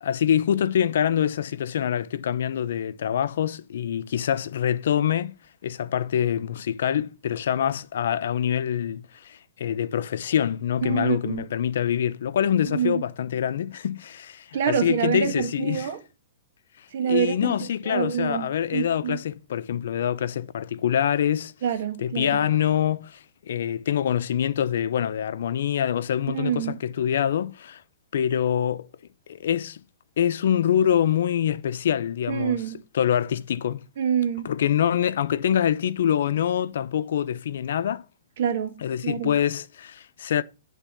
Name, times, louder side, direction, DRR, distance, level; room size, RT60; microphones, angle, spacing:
voice 1, 0.0-5.3 5.6-15.9 17.0-21.5 22.0-23.2 23.5-27.8 28.1-28.9 29.3-29.8 30.2-32.6 32.9-33.8 34.4-38.0 38.8-40.4, left 9 dB, 75° left, 0.6 m, -25 dB
voice 2, 10.8-11.4 12.6-13.0 14.5-16.0 16.9-17.5 17.8-18.5 18.7-19.2 21.6-22.4 26.3-26.8 32.3-32.7 34.0-34.5 38.4-38.7 39.0-39.3, right 8 dB, 65° right, 1.5 m, -26 dB
10.0 x 3.6 x 7.3 m
hypercardioid pair, 150°, 0 cm